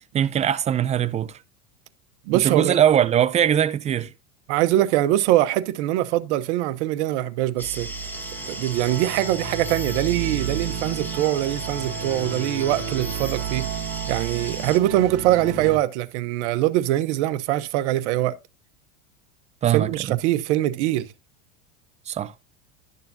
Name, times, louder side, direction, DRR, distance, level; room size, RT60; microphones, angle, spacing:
voice 1, 0.1-1.3 2.3-4.1 19.6-19.9 22.1-22.3, right 9 dB, 20° right, 0.4 m, -21 dB
voice 2, 2.3-2.8 4.5-7.9 8.4-18.3 19.7-21.1, right 14 dB, 70° right, 1.0 m, -23 dB
sound 1, 7.6-14.8, left 1 dB, 5° left, 1.2 m, -36 dB
sound 2, 7.6-15.8, right 7 dB, 40° right, 1.4 m, -32 dB
12.0 x 6.8 x 2.7 m
supercardioid pair, 130°, 36 cm